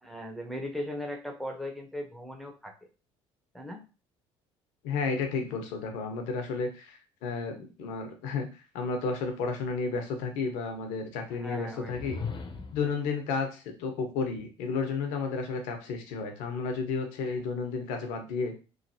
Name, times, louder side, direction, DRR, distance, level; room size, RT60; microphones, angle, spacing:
voice 1, 0.0-2.9 3.5-3.8 11.3-12.1, left 1 dB, ahead, 2 dB, 0.8 m, -38 dB
voice 2, 4.8-12.2 12.7-18.5, left 4 dB, 80° left, 5 dB, 0.8 m, -32 dB
sound 1, 11.8-13.0, left 5 dB, 35° left, 0.7 m, -37 dB
3.2 x 2.5 x 2.7 m, 0.32 s
supercardioid pair, 70°, 13 cm